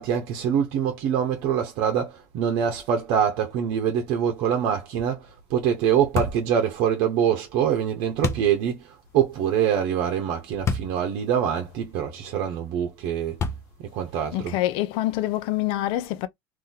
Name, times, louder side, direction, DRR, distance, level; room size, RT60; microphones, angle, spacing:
voice 1, 0.0-13.4 13.8-14.5, right 8 dB, 65° right, 0.8 m, -24 dB
sound 1, 6.2-6.5 8.2-8.5 10.7-11.0 11.6-11.7 13.4-13.9, left 4 dB, 30° left, 0.7 m, -27 dB
voice 2, 14.3-16.3, left 14 dB, 65° left, 0.6 m, -26 dB
2.7 x 2.6 x 3.8 m
supercardioid pair, 125°, 9 cm